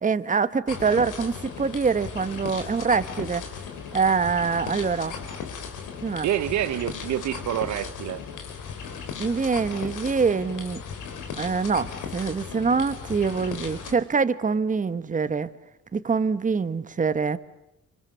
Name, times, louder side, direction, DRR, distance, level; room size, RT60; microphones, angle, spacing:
voice 1, 0.0-3.4 3.9-5.1 6.0-6.3 9.2-10.8 11.4-15.5 15.9-17.4, right 5 dB, 25° right, 1.1 m, -24 dB
sound 1, 0.7-13.9, left 6 dB, 85° left, 3.7 m, -36 dB
voice 2, 6.2-8.2, right 12 dB, 65° right, 0.9 m, -27 dB
27.5 x 25.0 x 6.8 m
cardioid pair, 90°, 30 cm